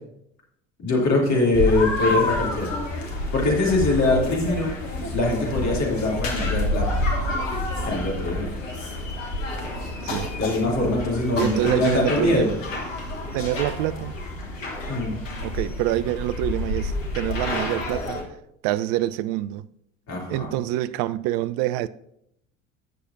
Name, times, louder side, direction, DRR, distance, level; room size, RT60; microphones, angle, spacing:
voice 1, 0.8-2.7 3.3-4.7 5.1-7.0 7.8-8.5 10.4-12.5 14.9-15.2 20.1-20.5, left 2 dB, 45° left, 2.9 m, -23 dB
sound 1, 1.5-18.2, left 2 dB, 80° left, 1.3 m, -29 dB
voice 2, 11.4-12.6 13.3-14.1 15.4-18.2 18.6-19.7 20.3-21.9, right 14 dB, 50° right, 0.5 m, -26 dB
16.5 x 6.5 x 2.6 m
figure-of-eight pair, 60°, 38 cm